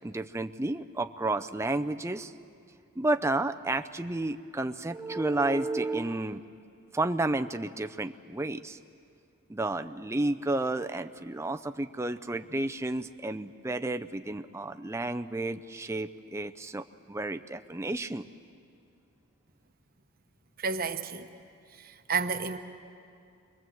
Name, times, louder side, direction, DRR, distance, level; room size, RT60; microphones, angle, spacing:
voice 1, 0.0-2.3 3.0-6.4 6.9-8.8 9.5-18.3, right 2 dB, 10° right, 0.5 m, -31 dB
voice 2, 20.6-21.3 22.1-22.6, right 5 dB, 40° right, 0.9 m, -30 dB
25.0 x 21.5 x 7.8 m
head